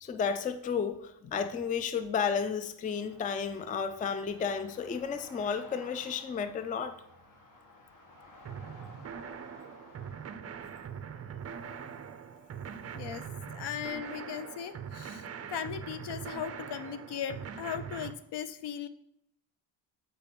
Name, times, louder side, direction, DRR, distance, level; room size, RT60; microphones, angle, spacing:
voice 1, 0.0-6.9, left 6 dB, 20° left, 0.4 m, -32 dB
sound 1, 2.9-10.3, left 2 dB, 45° left, 1.8 m, -54 dB
sound 2, 8.5-18.1, right 7 dB, 35° right, 0.5 m, -42 dB
voice 2, 13.5-15.3 15.5-18.9, left 9 dB, 65° left, 0.7 m, -38 dB
7.4 x 4.5 x 5.2 m
cardioid pair, 140°, 44 cm